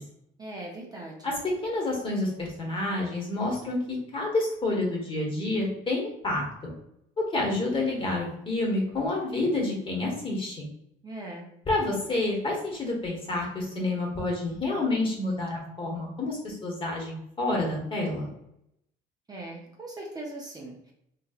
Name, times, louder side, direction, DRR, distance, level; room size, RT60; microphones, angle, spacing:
voice 1, 0.4-1.3 11.0-11.5 19.3-20.9, right 1 dB, 20° right, -2 dB, 0.6 m, -40 dB
voice 2, 1.6-6.4 7.2-10.6 11.7-18.3, left 2 dB, 30° left, -1 dB, 1.1 m, -29 dB
3.0 x 2.8 x 2.4 m, 0.75 s
cardioid pair, 110°, 17 cm